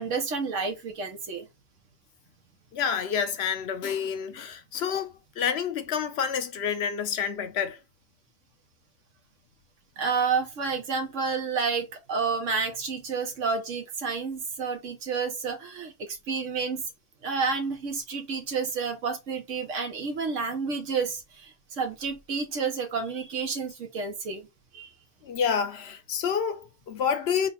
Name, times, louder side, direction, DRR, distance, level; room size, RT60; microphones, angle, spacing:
voice 1, 0.0-1.5 10.0-16.8 17.2-24.5 24.7-24.9, right 5 dB, 90° right, 1.3 m, -30 dB
voice 2, 2.7-7.8 25.2-27.5, left 7 dB, 65° left, 0.9 m, -28 dB
3.8 x 2.3 x 4.0 m
omnidirectional pair, 1.2 m